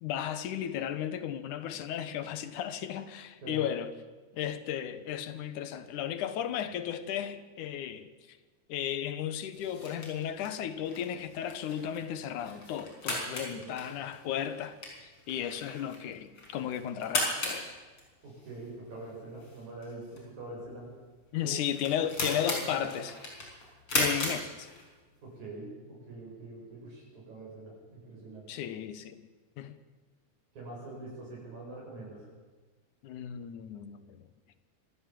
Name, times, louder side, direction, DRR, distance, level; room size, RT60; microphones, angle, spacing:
voice 1, 0.0-3.9 4.3-8.4 8.7-14.8 15.0-17.7 21.3-23.1 23.9-24.7 28.5-29.2 29.6-29.8 33.0-34.2, left 10 dB, 85° left, 2.6 m, -34 dB
sound 1, 9.5-25.2, left 1 dB, 45° left, 6.0 m, -37 dB
voice 2, 13.3-13.8 18.2-20.9 21.4-21.6 22.1-23.0 25.2-28.5 30.5-32.3, right 2 dB, 70° right, 9.4 m, -44 dB
25.0 x 15.5 x 7.6 m
omnidirectional pair, 3.5 m